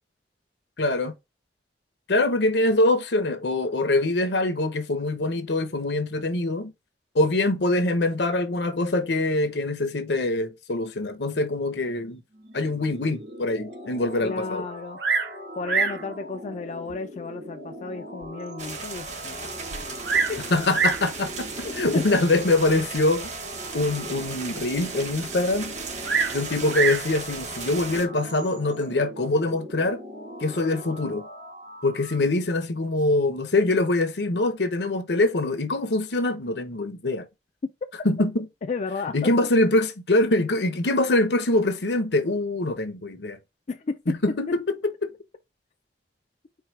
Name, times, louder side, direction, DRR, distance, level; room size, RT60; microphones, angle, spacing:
voice 1, 0.8-1.1 2.1-6.7 7.1-12.2 12.5-14.6 20.5-23.3 23.7-25.7 26.3-30.0 30.4-31.3 31.8-37.2 38.0-38.4 39.1-43.4 44.1-44.5 45.0-45.1, left 2 dB, 70° left, 0.9 m, -24 dB
sound 1, 12.3-32.2, equal, 60° right, 2.6 m, -41 dB
voice 2, 14.2-15.0 15.6-19.6 20.3-20.4 21.6-22.0 38.7-39.3 43.7-44.2, left 4 dB, 40° left, 0.4 m, -33 dB
Bird vocalization bird call bird song, 15.0-15.4 15.7-16.0 16.9-17.0 17.6-17.7 18.2-18.3 18.5-18.6 19.7-20.4 20.7-21.1 22.1-22.4 26.0-27.1 28.2-28.6, right 5 dB, 75° right, 0.8 m, -25 dB
sound 2, 18.6-28.1, right 5 dB, 40° right, 1.1 m, -36 dB
4.6 x 2.3 x 4.5 m
head